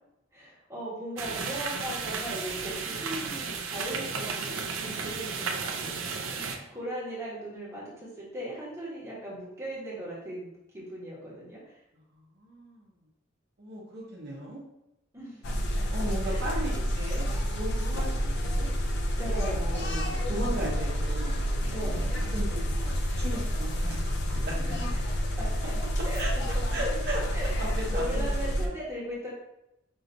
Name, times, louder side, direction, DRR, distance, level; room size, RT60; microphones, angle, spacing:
voice 1, 0.3-11.8 15.1-15.5 16.2-16.7 19.2-20.3 21.7-22.1 24.6-25.1 25.4-26.2 27.3-27.5 27.9-29.3, equal, 15° right, -7 dB, 1.5 m, -38 dB
Saucepan boiling over, 1.2-6.6, right 5 dB, 75° right, 0.5 m, -34 dB
voice 2, 5.7-6.7 12.3-12.9 13.6-14.6 15.9-17.3 17.6-18.7 19.2-24.7 26.2-26.3 26.7-28.7, right 1 dB, 55° right, -4 dB, 1.0 m, -37 dB
sound 1, 15.4-28.7, equal, 55° left, 0.5 m, -29 dB
5.5 x 2.9 x 2.7 m, 0.88 s
head